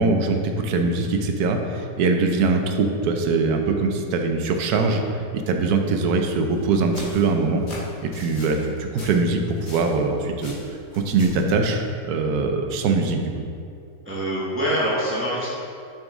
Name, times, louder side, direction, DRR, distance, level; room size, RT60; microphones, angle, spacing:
voice 1, 0.0-7.6 8.0-10.5 10.9-13.2, right 3 dB, 75° right, 4 dB, 1.2 m, -22 dB
sound 1, 6.5-10.1 10.4-11.5, left 2 dB, 45° left, 1.5 m, -40 dB
voice 2, 14.0-15.5, equal, 10° right, -8 dB, 1.1 m, -24 dB
6.3 x 6.2 x 3.6 m, 2.5 s
omnidirectional pair, 1.7 m